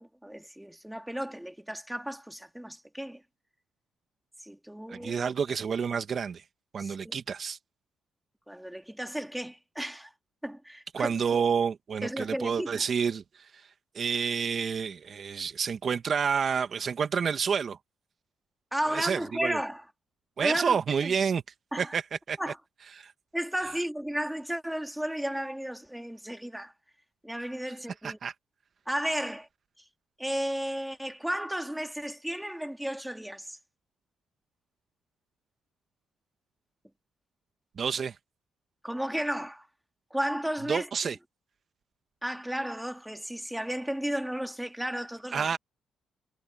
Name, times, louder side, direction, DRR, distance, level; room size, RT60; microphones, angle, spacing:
voice 1, 0.0-3.2 4.4-5.3 6.8-7.2 8.5-10.1 10.4-11.4 12.0-12.8 18.7-19.8 20.4-21.1 21.7-22.0 22.4-22.6 23.3-26.7 27.2-28.2 28.9-29.5 30.2-33.6 38.8-39.7 40.1-40.9 42.2-45.6, equal, 5° right, 2.5 m, -34 dB
voice 2, 4.9-6.4 6.7-7.6 10.9-13.5 13.9-17.8 18.9-19.6 20.4-21.4 21.8-22.4 23.0-23.1 23.6-23.7 28.0-28.3 37.8-38.1 40.7-41.2 45.3-45.6, right 6 dB, 50° right, 1.6 m, -29 dB
cardioid pair, 90°, 0 cm